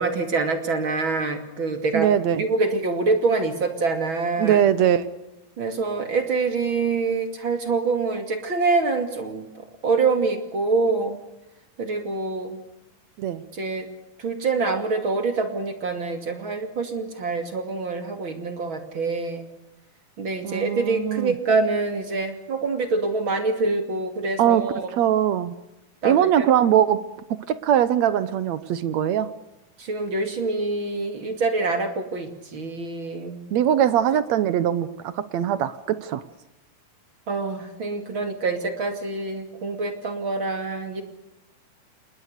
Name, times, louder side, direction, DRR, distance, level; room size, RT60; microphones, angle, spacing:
voice 1, 0.0-2.1 2.4-4.6 5.6-11.2 11.8-12.6 13.5-13.9 14.2-19.5 20.2-24.9 26.0-26.5 29.8-33.4 37.3-41.0, right 3 dB, 35° right, 6 dB, 2.8 m, -25 dB
voice 2, 1.9-2.4 4.4-5.1 13.2-13.4 20.4-21.3 24.4-24.6 25.0-25.5 26.0-27.0 27.5-29.3 33.5-36.2, right 10 dB, 70° right, 14 dB, 1.7 m, -21 dB
27.5 x 20.5 x 6.7 m, 0.92 s
omnidirectional pair, 4.3 m